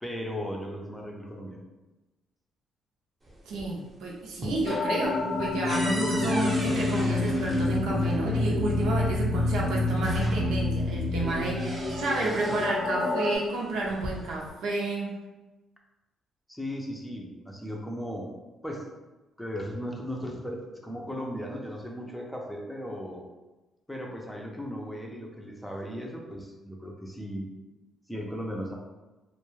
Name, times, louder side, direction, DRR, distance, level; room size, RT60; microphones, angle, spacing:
voice 1, 0.0-1.6 16.5-18.3 18.6-18.9 19.4-23.3 23.9-27.5 28.1-28.7, equal, 5° left, -1 dB, 0.5 m, -36 dB
sound 1, 3.2-3.9 4.2-8.2 9.3-9.4 9.8-10.7 11.1-12.8 13.7-14.5, right 1 dB, 30° right, 0.8 m, -39 dB
voice 2, 3.5-15.1, right 2 dB, 85° right, -3 dB, 0.6 m, -31 dB
sound 2, 4.7-13.4, left 2 dB, 70° left, 0.6 m, -28 dB
2.2 x 2.1 x 3.1 m, 1.1 s
cardioid pair, 90°, 0 cm